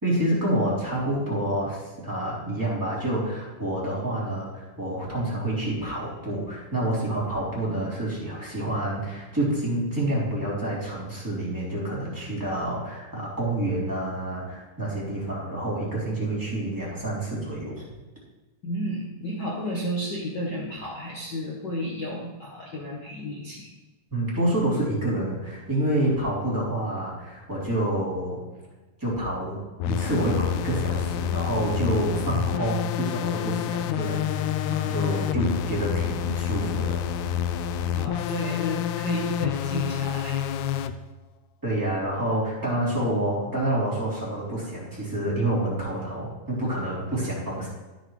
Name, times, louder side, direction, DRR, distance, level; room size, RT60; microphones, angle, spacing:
voice 1, 0.0-17.8 24.1-28.4 29.0-37.0 41.6-47.7, right 1 dB, 5° right, -7 dB, 2.9 m, -28 dB
voice 2, 18.6-23.7 32.1-32.3 37.9-40.6, equal, 70° left, -4 dB, 1.0 m, -32 dB
sound 1, 29.8-40.9, left 10 dB, 90° left, 1.6 m, -28 dB
13.5 x 6.7 x 3.2 m, 1.2 s
omnidirectional pair, 3.8 m